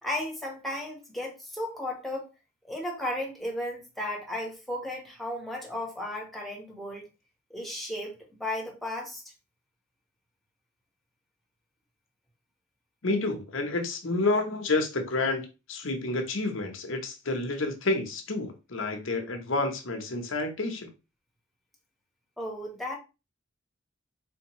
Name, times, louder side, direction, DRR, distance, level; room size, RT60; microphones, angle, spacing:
voice 1, 0.0-2.3 2.7-7.1 7.5-9.2 22.4-23.0, left 1 dB, ahead, 1.2 m, -34 dB
voice 2, 13.0-15.4 15.7-20.9, left 2 dB, 75° left, 1.0 m, -29 dB
4.1 x 3.6 x 3.0 m
head